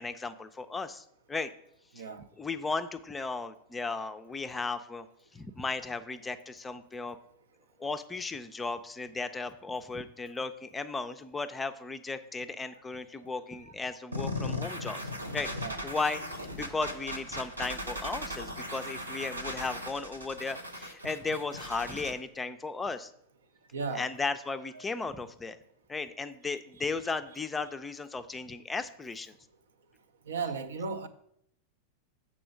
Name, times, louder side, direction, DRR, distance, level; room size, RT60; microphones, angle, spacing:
voice 1, 0.0-1.5 2.4-5.1 5.3-7.2 7.8-15.0 15.3-15.5 15.8-16.2 16.5-23.1 23.9-25.6 25.9-29.3, left 4 dB, 15° left, 0.4 m, -35 dB
voice 2, 1.9-2.3 12.7-12.8 13.2-13.3 13.6-13.7 15.6-15.8 23.7-24.1 24.7-24.8 30.3-31.1, right 5 dB, 65° right, 0.5 m, -36 dB
sound 1, 14.1-22.1, left 1 dB, 85° right, 0.8 m, -38 dB
6.9 x 4.2 x 6.2 m
figure-of-eight pair, 90°, 0 cm